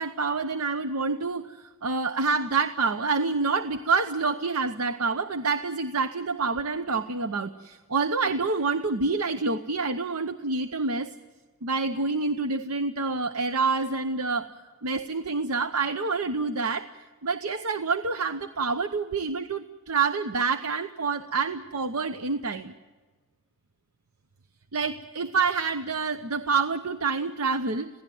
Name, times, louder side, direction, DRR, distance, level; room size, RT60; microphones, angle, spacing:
voice 1, 0.0-11.1 11.6-14.5 14.8-16.9 17.2-22.7 24.7-27.9, right 4 dB, 75° right, 10 dB, 0.8 m, -27 dB
27.5 x 17.0 x 7.8 m, 1.3 s
head